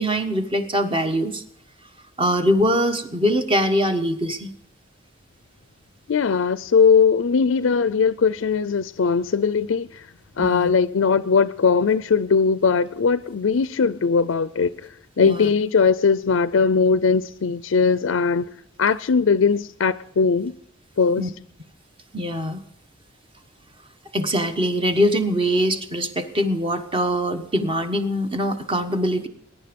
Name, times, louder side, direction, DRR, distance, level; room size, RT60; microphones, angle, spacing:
voice 1, 0.0-1.4 2.2-4.5 10.4-10.7 15.2-15.5 21.2-21.3 22.1-22.6 24.1-29.3, equal, 25° right, 1.2 m, -22 dB
voice 2, 6.1-10.1 10.4-18.5 18.8-20.6 21.0-21.3, left 5 dB, 90° left, 0.5 m, -20 dB
21.0 x 10.5 x 5.2 m
head